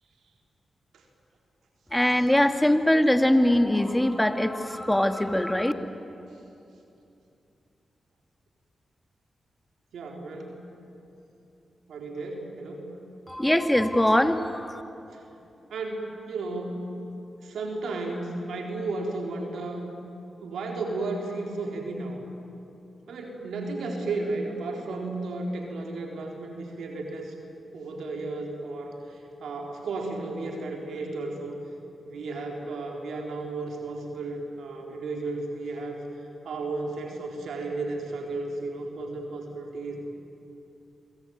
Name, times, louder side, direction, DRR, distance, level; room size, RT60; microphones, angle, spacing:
voice 1, 1.9-5.7 13.3-14.8, left 1 dB, 10° left, 7 dB, 2.3 m, -22 dB
voice 2, 9.9-10.6 11.9-12.9 15.1-15.3 15.7-16.9 17.4-19.8 20.4-22.2 23.1-27.3 27.7-31.6 32.0-36.1 36.4-40.0, right 2 dB, 85° right, 1 dB, 4.1 m, -34 dB
27.0 x 23.0 x 9.5 m, 2.8 s
supercardioid pair, 45°, 0 cm